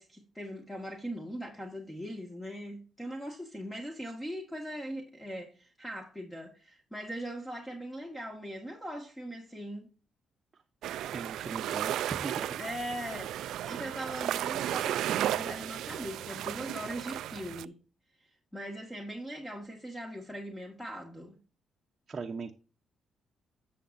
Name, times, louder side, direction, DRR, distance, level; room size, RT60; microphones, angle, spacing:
voice 1, 0.0-9.9 12.6-17.8 18.2-21.4, equal, 10° left, 1.8 m, -40 dB
sound 1, 10.8-17.6, right 12 dB, 80° right, 0.3 m, -34 dB
voice 2, 11.1-12.6 22.1-22.6, right 4 dB, 35° right, 0.8 m, -39 dB
11.5 x 7.3 x 2.6 m
cardioid pair, 90°, 0 cm